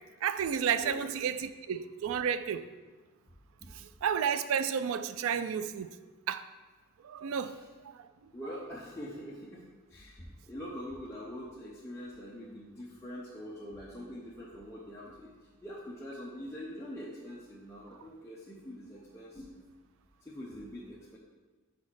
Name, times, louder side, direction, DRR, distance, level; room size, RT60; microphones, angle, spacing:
voice 1, 0.2-2.7 3.7-5.9 6.3-6.4 7.0-7.6 7.9-8.1, right 7 dB, 75° right, 0.3 m, -31 dB
voice 2, 8.3-9.6 9.9-15.3 15.6-19.6 20.2-21.2, equal, 15° left, 0.7 m, -44 dB
5.3 x 4.1 x 6.1 m
head